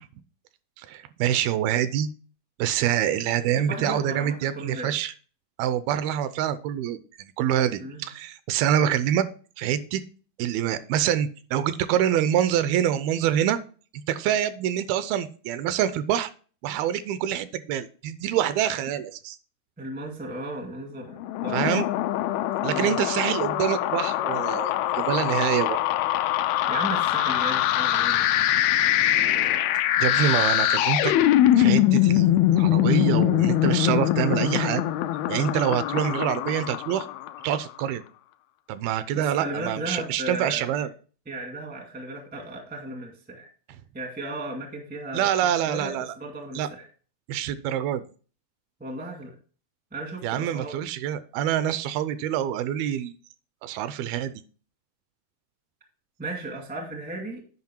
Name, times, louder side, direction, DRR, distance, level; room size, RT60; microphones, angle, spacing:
voice 1, 0.8-2.1 2.6-5.1 5.6-9.2 9.6-10.0 10.4-13.6 14.1-16.3 16.6-19.4 21.5-21.9 22.6-25.8 30.0-31.1 31.6-34.8 35.3-37.1 37.4-38.0 38.7-40.9 45.1-46.1 46.6-46.7 47.3-48.0 50.2-53.1 53.6-54.3, right 10 dB, 80° right, 13 dB, 2.4 m, -26 dB
voice 2, 3.6-4.9 7.8-8.1 19.8-21.6 22.7-22.9 26.7-28.2 39.1-40.9 41.2-43.5 43.9-46.9 48.8-49.3 49.9-50.8 56.2-57.4, right 2 dB, 10° right, 1 dB, 0.4 m, -35 dB
sound 1, 21.2-37.6, left 13 dB, 85° left, 2.4 m, -23 dB
9.6 x 5.4 x 4.4 m, 0.40 s
omnidirectional pair, 4.4 m